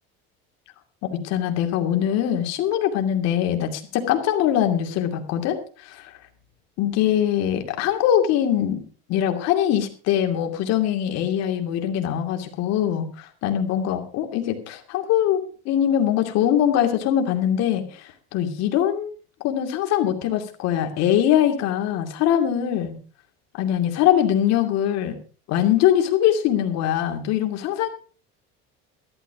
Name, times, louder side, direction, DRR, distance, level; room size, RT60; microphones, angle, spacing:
voice 1, 1.0-6.1 6.8-8.8 9.1-19.1 19.4-22.9 23.6-25.2 25.5-27.9, left 10 dB, 60° left, 5 dB, 2.6 m, -22 dB
14.0 x 12.5 x 4.8 m, 0.38 s
cardioid pair, 155°, 29 cm